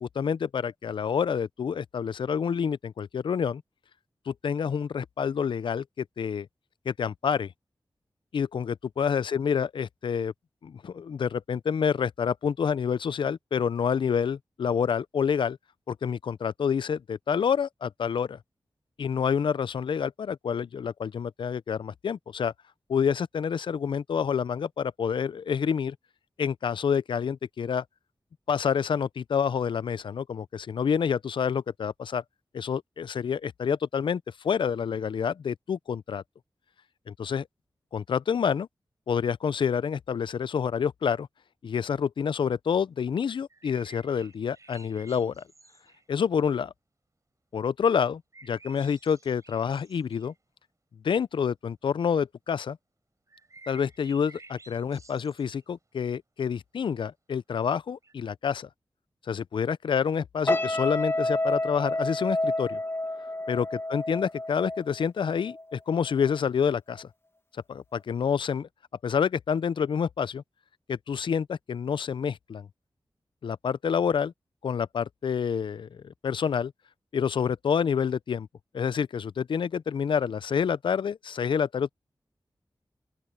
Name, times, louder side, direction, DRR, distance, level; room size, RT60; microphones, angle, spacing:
voice 1, 0.0-3.6 4.3-6.5 6.9-7.5 8.3-10.3 10.6-15.6 15.9-18.4 19.0-22.5 22.9-26.0 26.4-27.8 28.5-32.2 32.5-36.2 37.1-37.5 37.9-38.7 39.1-41.3 41.6-45.4 46.1-46.7 47.5-50.3 51.0-52.8 53.7-58.7 59.3-62.8 63.5-67.1 67.7-68.7 69.0-70.4 70.9-72.7 73.4-74.3 74.6-76.7 77.1-78.5 78.7-81.9, left 7 dB, 75° left, 0.4 m, -28 dB
sound 1, 43.5-46.1 48.3-50.4 53.3-55.6 58.0-58.1, right 3 dB, 40° right, 5.6 m, -53 dB
sound 2, 60.4-65.8 66.1-66.4, left 1 dB, 30° left, 1.3 m, -29 dB
open air
wide cardioid pair, 75°, 8 cm